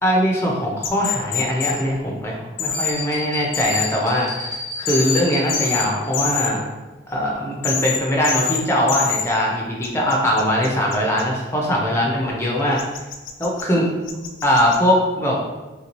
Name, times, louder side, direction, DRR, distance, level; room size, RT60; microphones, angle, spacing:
voice 1, 0.0-6.7 7.1-12.8 13.4-13.9 14.4-15.3, equal, 15° left, -2 dB, 0.5 m, -21 dB
sound 1, 0.8-1.7 2.6-2.9 3.5-3.9 4.9-5.2 5.5-5.8 6.1-6.5 7.6-8.0 8.2-8.6 8.9-9.2 9.8-11.2 12.8-13.6 14.1-14.8, left 7 dB, 75° left, 0.4 m, -25 dB
sound 2, 2.7-6.1, left 2 dB, 15° right, 0.8 m, -32 dB
3.3 x 2.7 x 3.0 m, 1.2 s
head